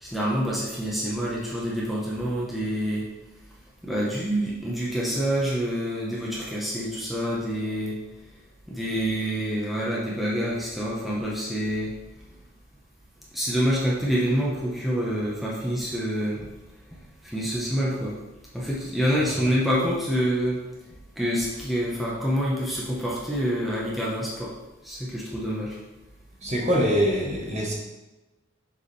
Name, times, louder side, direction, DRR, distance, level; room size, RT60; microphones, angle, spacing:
voice 1, 0.0-3.1 3.8-8.0 8.7-11.9 13.3-16.5 17.2-18.2 18.5-20.6 21.2-24.5 24.8-25.8, equal, ahead, -6 dB, 1.0 m, -27 dB
voice 2, 26.4-27.7, equal, 35° right, -2 dB, 1.2 m, -23 dB
7.0 x 4.7 x 3.3 m, 1.1 s
head